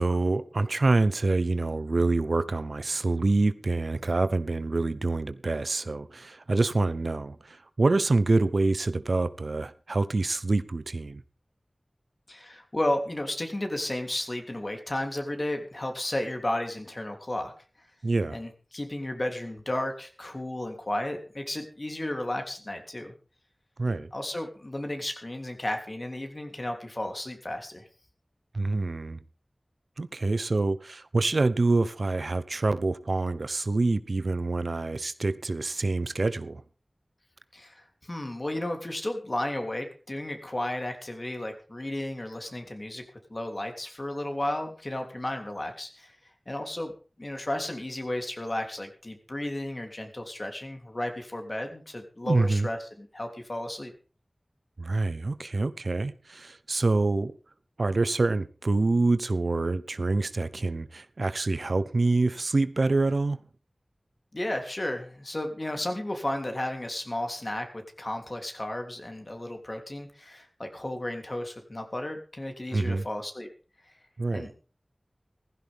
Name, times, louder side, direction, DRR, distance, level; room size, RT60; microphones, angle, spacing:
voice 1, 0.0-11.2 18.0-18.4 23.8-24.1 28.5-29.2 30.0-36.6 52.2-52.7 54.8-57.3 57.8-63.4 72.7-73.0 74.2-74.5, right 3 dB, 80° right, 0.8 m, -26 dB
voice 2, 12.3-17.5 18.3-23.1 24.1-27.8 37.5-43.0 43.3-46.2 46.5-46.9 47.2-53.9 64.3-67.7 68.0-73.5 74.3-74.5, left 1 dB, 40° left, 3.2 m, -33 dB
16.0 x 15.5 x 3.6 m
wide cardioid pair, 55°, 0 cm